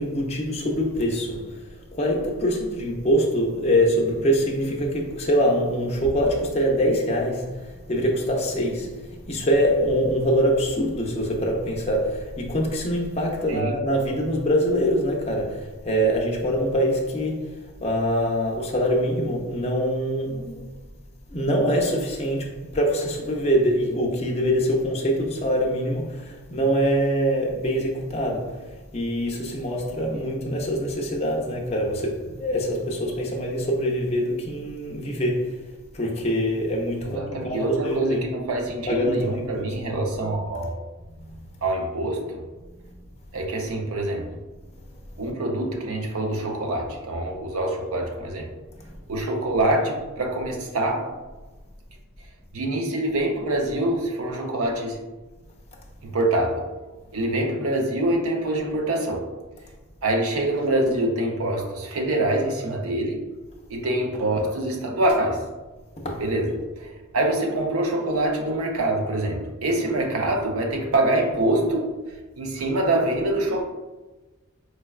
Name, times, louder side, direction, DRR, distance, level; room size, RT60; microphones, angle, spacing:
voice 1, 0.0-1.6 1.9-20.7 21.3-28.7 28.9-35.7 35.9-38.3 38.9-39.7 41.2-41.4 66.0-66.2, equal, 30° left, 0.5 m, -24 dB
voice 2, 13.5-13.8 37.0-40.7 41.6-42.4 43.3-44.3 45.2-48.5 49.1-51.1 52.5-55.0 56.0-56.7 57.1-59.2 60.0-63.2 63.7-65.5 66.2-71.9 72.4-73.6, right 1 dB, 85° right, 0.5 m, -25 dB
4.5 x 2.2 x 2.3 m
head